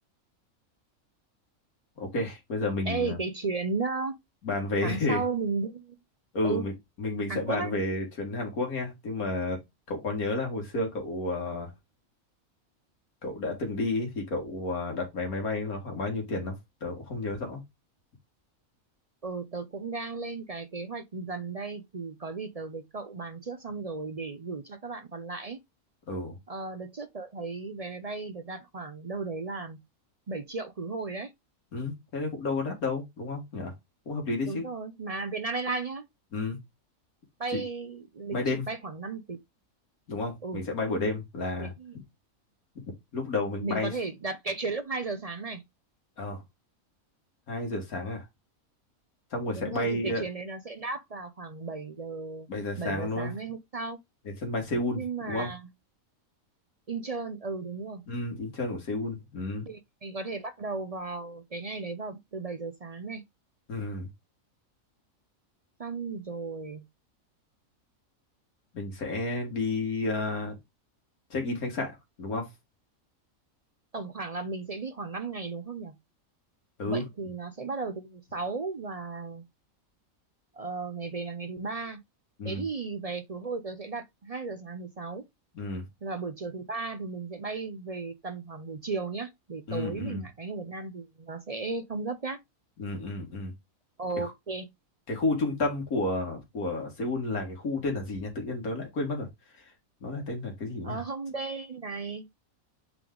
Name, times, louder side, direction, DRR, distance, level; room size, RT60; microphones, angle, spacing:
voice 1, 2.0-3.2 4.4-5.2 6.3-6.7 7.0-9.6 9.9-11.7 13.2-16.6 16.8-17.6 26.1-26.4 31.7-33.7 34.1-34.7 36.3-36.6 37.5-37.6 38.3-38.6 40.1-41.7 43.1-43.9 46.2-46.4 47.5-48.3 49.3-50.2 52.5-53.3 54.3-55.0 55.3-55.5 58.1-59.7 63.7-64.1 68.7-70.6 71.3-72.5 76.8-77.0 82.4-82.6 85.5-85.8 89.7-90.2 92.8-93.5 94.2-94.3 95.1-99.3 99.5-99.6 100.0-101.0, left 2 dB, 90° left, 2.4 m, -31 dB
voice 2, 2.9-4.2 4.8-6.0 6.4-6.6 7.3-7.7 19.2-25.6 26.5-29.8 30.3-31.3 34.4-36.1 37.4-39.4 40.4-40.6 41.6-41.9 43.6-45.6 49.5-52.5 52.8-54.0 54.9-55.7 56.9-58.0 59.7-63.2 65.8-66.8 73.9-76.0 76.8-79.4 80.5-82.0 82.4-85.2 86.0-92.4 94.0-94.7 100.8-102.3, right 4 dB, 50° right, 0.4 m, -35 dB
8.1 x 3.5 x 3.8 m
omnidirectional pair, 1.5 m